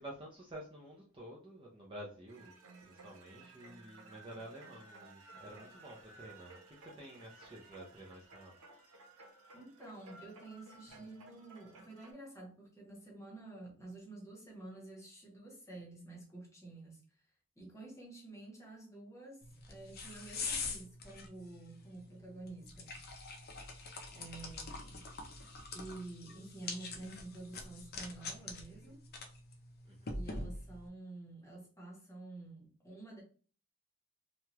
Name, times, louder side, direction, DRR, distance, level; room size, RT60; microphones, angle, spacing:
voice 1, 0.0-2.5 2.8-8.5 10.9-11.0 29.9-30.2, right 1 dB, 25° right, 0.5 m, -50 dB
sound 1, 2.3-12.1, right 2 dB, 90° right, 0.8 m, -57 dB
voice 2, 9.5-17.0 17.6-22.9 23.4-23.6 24.1-25.0 25.7-29.0 30.1-33.2, right 2 dB, 15° left, 0.9 m, -50 dB
sound 2, 19.4-30.9, left 3 dB, 45° left, 0.5 m, -45 dB
3.0 x 2.3 x 2.9 m
head